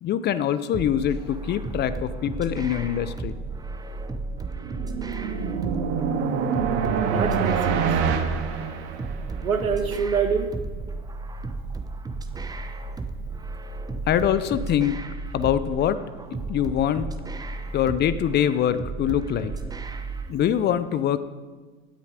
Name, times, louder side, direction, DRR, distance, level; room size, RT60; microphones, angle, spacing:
voice 1, 0.0-3.4 14.1-15.0 15.3-16.0 16.5-17.1 17.7-19.5 20.3-21.2, left 10 dB, 25° left, 14 dB, 0.6 m, -24 dB
sound 1, 0.7-20.3, right 3 dB, 10° right, 0.9 m, -34 dB
sound 2, 4.4-9.4, right 6 dB, 55° right, 2.1 m, -26 dB
voice 2, 7.0-7.9 9.4-10.5 20.3-20.5, right 6 dB, 90° right, 7 dB, 1.5 m, -26 dB
16.5 x 9.6 x 5.0 m, 1.4 s
hypercardioid pair, 95°, 41 cm